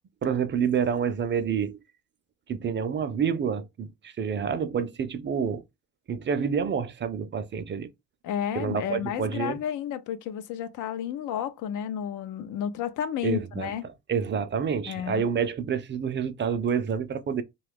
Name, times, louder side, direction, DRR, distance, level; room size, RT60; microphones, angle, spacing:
voice 1, 0.2-1.8 2.5-5.6 6.1-7.9 8.5-9.6 13.2-13.7 14.1-17.4, right 7 dB, 40° right, 0.5 m, -28 dB
voice 2, 8.2-13.9 14.9-15.2, left 9 dB, 85° left, 0.5 m, -32 dB
2.9 x 2.3 x 3.4 m
cardioid pair, 90°, 30 cm